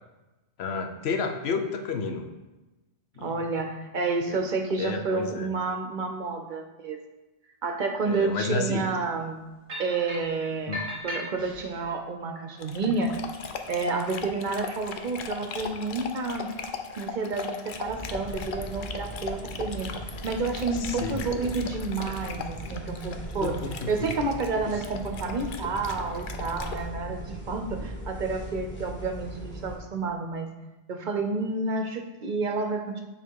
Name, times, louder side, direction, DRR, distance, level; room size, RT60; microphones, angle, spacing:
voice 1, 0.6-2.3 3.2-3.4 4.3-4.4 4.8-5.5 8.1-8.9 10.7-10.8 20.7-21.3 23.4-24.3, left 4 dB, 80° left, 5 dB, 0.9 m, -31 dB
voice 2, 3.2-7.0 7.6-9.4 9.8-10.8 11.0-13.1 13.7-16.5 17.0-19.9 20.2-23.6 23.9-30.5 30.9-33.0, right 3 dB, 55° right, 4 dB, 0.7 m, -30 dB
sound 1, 9.7-10.3 10.7-11.8, left 1 dB, 30° right, 1.3 m, -36 dB
Dog, 12.6-26.8, left 5 dB, 60° left, 0.7 m, -39 dB
sound 2, 17.8-29.8, equal, 10° left, 1.3 m, -39 dB
6.9 x 3.5 x 4.6 m, 1.1 s
omnidirectional pair, 1.0 m